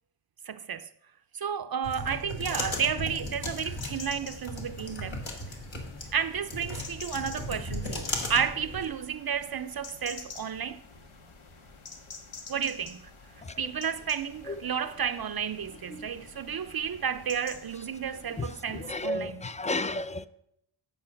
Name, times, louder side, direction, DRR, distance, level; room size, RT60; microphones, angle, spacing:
voice 1, 0.5-0.9 1.3-5.2 6.1-10.8 12.5-13.0 13.6-19.4, right 7 dB, 50° right, 0.5 m, -32 dB
sound 1, 1.8-8.9, left 1 dB, 65° left, 2.0 m, -36 dB
sound 2, 3.5-19.1, left 4 dB, 85° left, 1.3 m, -48 dB
voice 2, 18.9-20.3, left 2 dB, 15° left, 0.4 m, -31 dB
9.0 x 7.1 x 5.7 m
cardioid pair, 65°, 49 cm